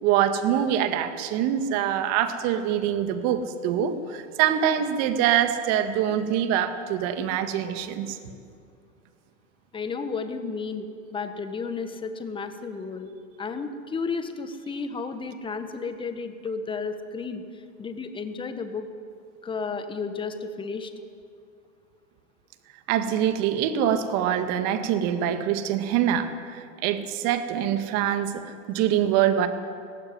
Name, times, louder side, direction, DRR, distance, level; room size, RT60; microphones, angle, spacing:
voice 1, 0.0-8.2 22.9-28.4 28.7-29.5, right 10 dB, 40° right, 8 dB, 1.9 m, -24 dB
voice 2, 9.7-13.1 13.4-17.4 17.8-18.9 19.4-20.9, left 4 dB, 10° left, 8 dB, 1.5 m, -32 dB
18.0 x 15.5 x 9.6 m, 2.4 s
hypercardioid pair, 125°, 39 cm